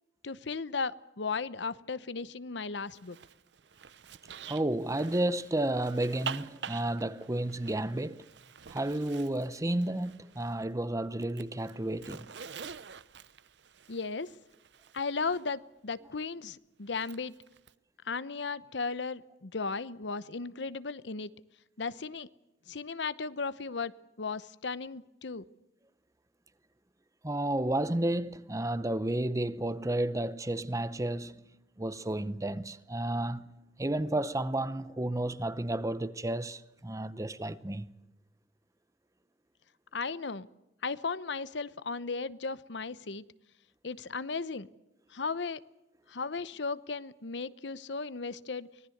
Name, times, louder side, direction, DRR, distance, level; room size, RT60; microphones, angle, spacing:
voice 1, 0.2-3.2 13.9-14.4 14.9-17.3 18.0-21.3 21.8-22.3 22.7-23.9 24.2-25.4 39.9-40.5 40.8-43.2 43.8-44.7 45.1-45.6 46.1-48.7, left 4 dB, 70° left, 0.9 m, -35 dB
Zipper (clothing), 2.9-10.7 11.0-15.5 16.9-17.7, right 7 dB, 65° right, 0.8 m, -47 dB
voice 2, 4.5-8.3 8.7-12.3 27.2-31.5 31.8-37.9, right 1 dB, 15° right, 0.8 m, -32 dB
25.0 x 19.0 x 7.9 m
head